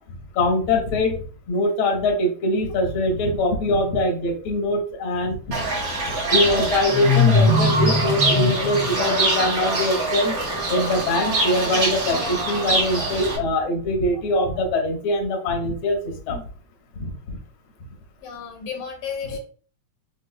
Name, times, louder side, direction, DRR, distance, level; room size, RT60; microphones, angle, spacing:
voice 1, 0.3-1.2 1.5-5.6 6.3-10.4 10.7-16.4 17.0-17.4 19.2-19.4, left 1 dB, 55° left, 1 dB, 1.6 m, -23 dB
Fowl / Bird, 5.5-13.4, equal, 45° right, 1.2 m, -22 dB
voice 2, 18.2-19.4, left 6 dB, 75° left, 2 dB, 2.3 m, -33 dB
6.1 x 3.4 x 2.3 m, 0.40 s
omnidirectional pair, 3.5 m